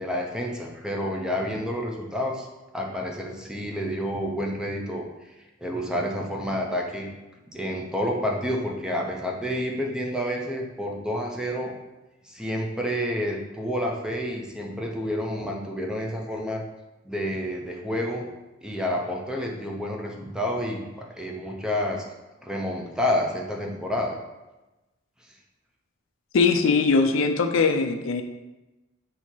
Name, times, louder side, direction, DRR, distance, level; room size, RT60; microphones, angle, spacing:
voice 1, 0.0-2.5 2.7-5.0 5.6-7.1 7.5-11.7 12.2-16.6 17.1-18.3 18.6-22.0 22.4-24.2, equal, 5° right, 0 dB, 0.5 m, -29 dB
voice 2, 26.3-28.2, left 4 dB, 85° left, 6 dB, 0.4 m, -21 dB
4.1 x 2.8 x 4.4 m, 1.1 s
head